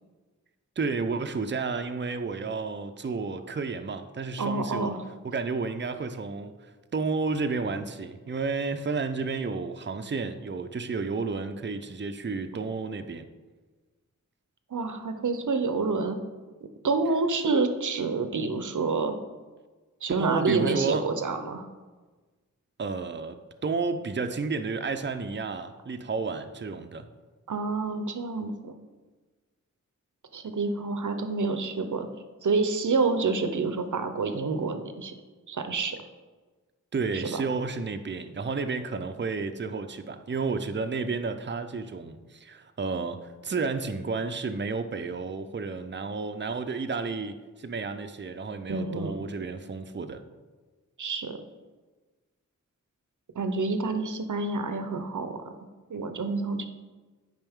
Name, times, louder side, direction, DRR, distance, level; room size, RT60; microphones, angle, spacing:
voice 1, 0.8-5.0 5.2-13.3 20.2-21.1 22.8-27.1 36.9-50.2, right 4 dB, 35° right, 8 dB, 0.5 m, -31 dB
voice 2, 4.4-5.0 14.7-16.2 16.8-19.1 20.0-21.7 27.5-28.7 30.3-32.1 32.4-35.1 35.5-36.0 37.1-37.4 48.7-49.2 51.0-51.4 53.4-55.5 55.9-56.7, right 3 dB, 70° right, 8 dB, 0.7 m, -28 dB
8.9 x 5.2 x 3.6 m, 1.3 s
wide cardioid pair, 50°, 31 cm